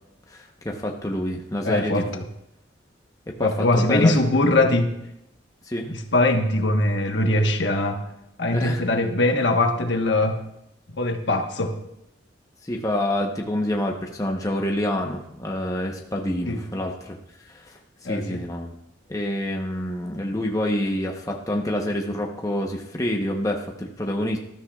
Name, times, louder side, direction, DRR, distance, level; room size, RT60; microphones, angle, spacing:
voice 1, 0.3-2.2 3.3-4.2 5.7-5.9 8.5-8.8 12.6-17.2 17.5-18.7 19.1-24.4, left 1 dB, 15° left, 1 dB, 0.9 m, -27 dB
voice 2, 1.6-2.1 3.4-5.0 5.9-8.0 8.4-10.4 11.0-11.8 16.5-16.6 18.0-18.4, left 2 dB, 65° left, 4 dB, 1.3 m, -21 dB
19.5 x 13.0 x 2.4 m, 0.84 s
head